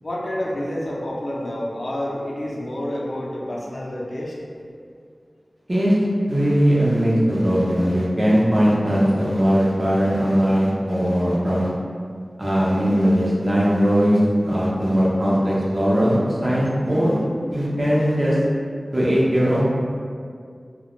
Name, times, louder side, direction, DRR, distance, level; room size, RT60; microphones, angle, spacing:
voice 1, 0.0-4.3, left 1 dB, 60° left, -5 dB, 0.4 m, -28 dB
voice 2, 6.3-11.7 12.4-17.2 17.5-18.4 18.9-19.6, equal, 40° right, -7 dB, 0.6 m, -19 dB
2.3 x 2.1 x 3.0 m, 2.2 s
wide cardioid pair, 65°, 0 cm